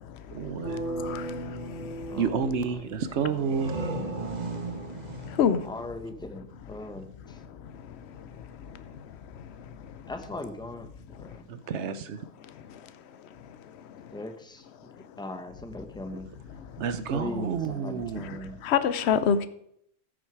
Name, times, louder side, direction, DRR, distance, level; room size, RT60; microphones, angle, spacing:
voice 1, 0.3-0.8 2.2-3.8 11.5-12.3 16.8-18.4, right 6 dB, 80° right, 1.1 m, -30 dB
sound 1, 0.6-3.6, right 1 dB, 15° right, 4.2 m, -37 dB
voice 2, 1.0-1.4 5.4-5.6 18.2-18.3 18.6-19.5, left 7 dB, 70° left, 0.9 m, -24 dB
voice 3, 2.8-3.6 4.2-4.3 5.6-7.4 10.1-11.5 14.1-14.7 15.2-16.3 17.1-18.6, left 2 dB, 5° left, 0.9 m, -39 dB
sound 2, 3.2-6.8, right 3 dB, 40° right, 1.1 m, -36 dB
14.0 x 6.4 x 4.6 m
omnidirectional pair, 1.2 m